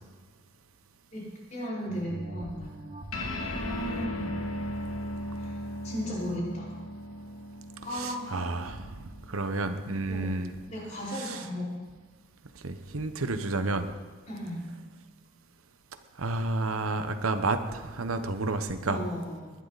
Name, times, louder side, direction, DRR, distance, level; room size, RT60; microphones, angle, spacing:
voice 1, 1.1-2.7 3.5-4.3 5.4-5.6 5.8-6.7 7.8-8.4 10.1-10.4 10.7-11.8 14.3-14.6 18.8-19.5, equal, 35° left, -5 dB, 5.0 m, -35 dB
sound 1, 1.9-6.8 7.3-7.4, right 2 dB, 30° right, 1.9 m, -47 dB
sound 2, 3.1-9.9, left 1 dB, 90° left, 1.8 m, -37 dB
voice 2, 7.9-8.9 9.3-10.5 11.1-11.4 12.6-13.9 16.2-19.0, right 2 dB, 85° right, 8 dB, 1.1 m, -30 dB
20.5 x 11.5 x 4.1 m, 1.4 s
head